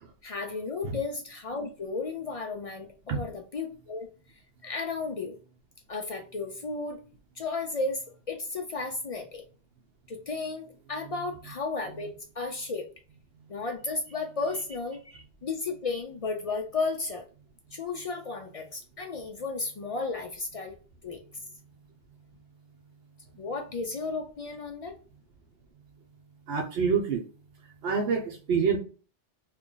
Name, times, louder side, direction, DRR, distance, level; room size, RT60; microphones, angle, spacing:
voice 1, 0.2-4.1 4.6-5.3 5.9-7.0 7.4-9.4 10.1-12.1 12.4-12.9 13.5-15.0 15.4-17.2 17.7-20.7 21.0-21.2 23.4-24.9, left 3 dB, 55° left, 4 dB, 0.4 m, -33 dB
voice 2, 26.5-27.2 27.8-28.8, right 6 dB, 75° right, 0 dB, 0.9 m, -26 dB
2.9 x 2.4 x 3.7 m, 0.37 s
omnidirectional pair, 1.1 m